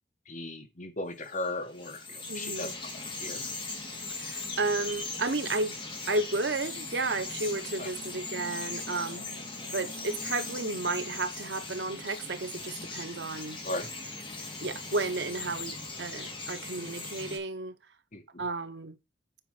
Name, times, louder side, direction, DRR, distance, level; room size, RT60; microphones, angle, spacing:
voice 1, 0.3-3.4 7.8-7.9 13.6-13.9 18.1-18.4, left 2 dB, 45° left, 1.8 m, -37 dB
Bird vocalization bird call bird song, 1.2-17.4, left 3 dB, 30° left, 2.7 m, -39 dB
voice 2, 2.3-2.7 4.2-5.8 6.1-9.2 9.7-13.6 14.6-17.7 18.4-19.0, right 3 dB, 80° right, 1.0 m, -32 dB
8.4 x 5.2 x 5.0 m
head